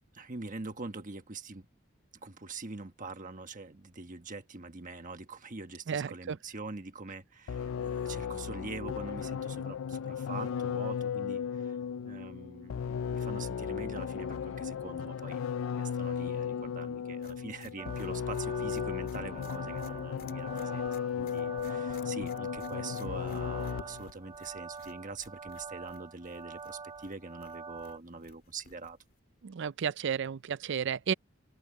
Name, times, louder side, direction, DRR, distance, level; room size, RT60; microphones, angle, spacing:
voice 1, 0.1-1.7 2.2-11.8 12.0-20.9 21.2-29.0, right 3 dB, 40° right, 1.3 m, -44 dB
voice 2, 5.9-6.4 29.4-31.1, right 7 dB, 60° right, 0.4 m, -32 dB
sound 1, 7.5-24.1, left 7 dB, 85° left, 0.4 m, -35 dB
sound 2, 17.2-29.2, left 4 dB, 45° left, 2.7 m, -59 dB
sound 3, 17.8-28.0, right 5 dB, 20° right, 0.6 m, -46 dB
open air
head